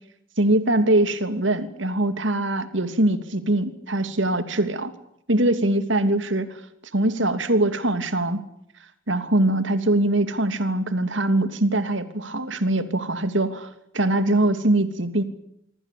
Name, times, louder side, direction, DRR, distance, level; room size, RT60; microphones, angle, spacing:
voice 1, 0.4-4.9 5.3-6.5 6.9-8.4 9.1-13.7 13.9-15.2, right 1 dB, 70° right, 10 dB, 3.0 m, -22 dB
26.5 x 24.0 x 8.6 m, 0.73 s
head